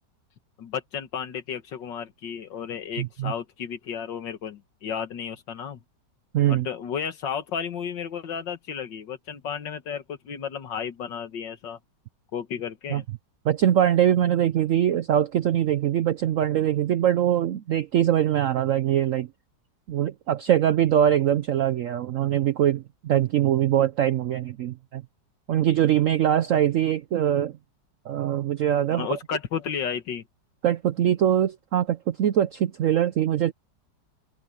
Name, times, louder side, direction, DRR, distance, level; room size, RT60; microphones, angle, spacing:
voice 1, 0.6-5.8 6.5-11.8 12.3-13.0 28.9-30.2, left 7 dB, 75° left, 2.1 m, -33 dB
voice 2, 3.0-3.3 6.3-6.7 12.9-13.0 13.4-19.3 19.9-25.0 25.5-27.6 28.1-29.2 30.6-33.5, right 10 dB, 75° right, 0.7 m, -22 dB
omnidirectional pair, 2.0 m